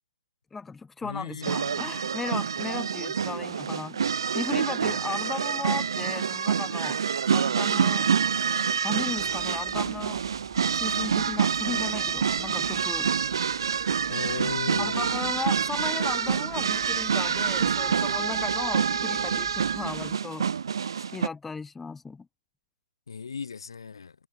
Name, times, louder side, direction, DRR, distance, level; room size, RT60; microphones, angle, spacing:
voice 1, 0.5-4.0 4.3-7.0 7.3-8.1 8.8-10.2 10.7-13.1 14.8-20.4 21.0-22.3, left 4 dB, 5° left, 0.6 m, -36 dB
voice 2, 1.0-1.9 14.1-15.1 23.1-24.2, left 5 dB, 90° left, 3.4 m, -36 dB
sound 1, 1.4-21.3, right 7 dB, 75° right, 1.1 m, -27 dB
sound 2, 9.1-20.2, right 8 dB, 15° right, 6.6 m, -53 dB
hypercardioid pair, 155°, 2 cm